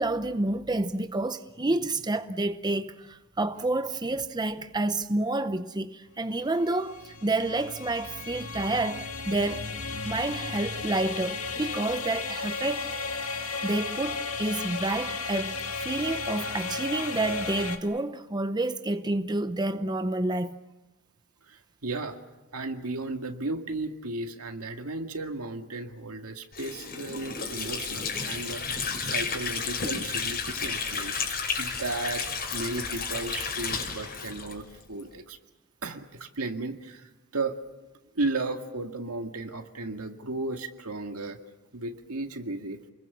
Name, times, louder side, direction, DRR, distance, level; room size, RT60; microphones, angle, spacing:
voice 1, 0.0-9.7 10.0-12.9 13.3-20.6, right 2 dB, 20° right, 0.8 m, -29 dB
sound 1, 6.4-17.8, left 4 dB, 70° left, 1.9 m, -34 dB
voice 2, 21.4-22.2 22.5-31.2 31.6-32.2 32.5-35.4 35.8-37.6 38.1-41.4 41.7-42.8, right 2 dB, 80° right, 2.0 m, -34 dB
Water / Sink (filling or washing), 26.5-35.1, left 5 dB, 45° left, 5.0 m, -32 dB
29.0 x 21.5 x 7.2 m
head